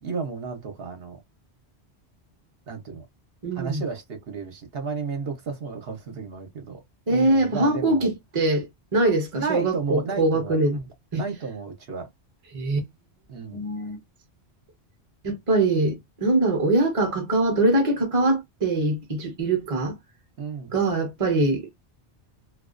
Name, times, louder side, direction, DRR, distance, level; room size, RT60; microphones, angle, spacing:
voice 1, 0.0-1.2 2.7-3.0 3.5-6.8 7.1-8.1 9.3-10.9 11.1-12.1 13.3-13.6 20.4-20.7, right 5 dB, 65° right, 0.9 m, -33 dB
voice 2, 3.4-3.8 7.1-10.8 11.1-11.2 12.5-12.9 13.5-14.0 15.2-20.0 20.7-21.7, right 2 dB, 35° right, 0.8 m, -23 dB
2.4 x 2.3 x 2.4 m
omnidirectional pair, 1.1 m